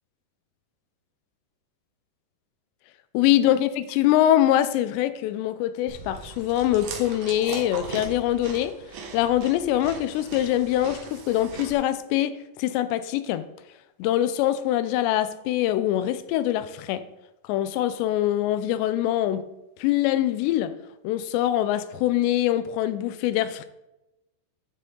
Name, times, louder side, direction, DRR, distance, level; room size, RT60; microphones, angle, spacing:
voice 1, 3.1-8.7 9.1-13.4 14.0-17.0 17.4-19.4 19.8-20.7 21.0-23.7, left 13 dB, 90° left, 13 dB, 2.9 m, -23 dB
Chewing mastication, 5.9-11.7, right 5 dB, 85° right, 3.6 m, -39 dB
11.5 x 6.7 x 3.8 m, 0.93 s
omnidirectional pair, 4.9 m